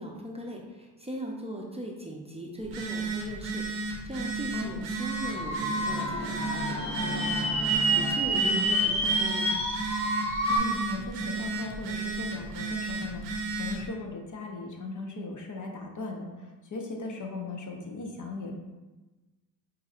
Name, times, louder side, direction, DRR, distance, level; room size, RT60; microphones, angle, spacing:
voice 1, 0.0-9.5, right 1 dB, 15° right, -1 dB, 0.6 m, -39 dB
Telephone, 2.6-13.9, right 3 dB, 80° right, 0.8 m, -34 dB
voice 2, 4.5-4.9 8.4-8.7 10.5-18.5, left 3 dB, 45° left, 2 dB, 0.7 m, -38 dB
sound 1, 4.9-10.6, right 1 dB, 15° left, 1.1 m, -28 dB
sound 2, 5.9-9.2, left 2 dB, 90° left, 0.9 m, -38 dB
5.5 x 2.7 x 2.4 m, 1.2 s
supercardioid pair, 50°, 44 cm